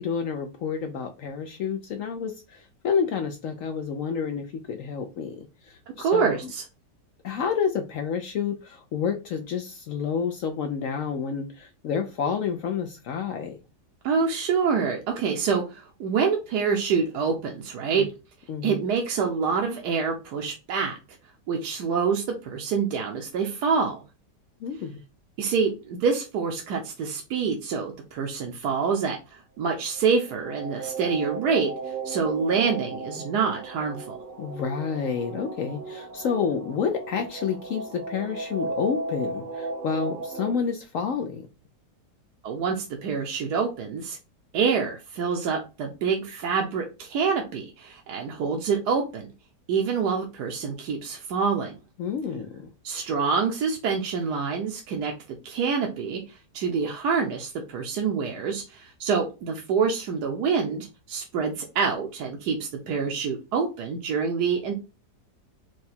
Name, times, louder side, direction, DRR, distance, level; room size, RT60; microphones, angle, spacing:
voice 1, 0.0-6.4 7.2-13.6 18.5-18.8 24.6-25.0 34.4-41.5 52.0-52.7, left 6 dB, 70° left, 0.8 m, -29 dB
voice 2, 6.0-6.6 14.0-18.1 18.6-20.9 21.5-24.0 25.4-31.7 32.0-34.1 42.4-44.2 44.5-49.3 49.7-51.7 52.8-64.7, right 5 dB, 70° right, 1.2 m, -26 dB
sound 1, 29.9-40.5, right 3 dB, 85° right, 1.5 m, -36 dB
4.7 x 2.2 x 4.2 m
omnidirectional pair, 1.8 m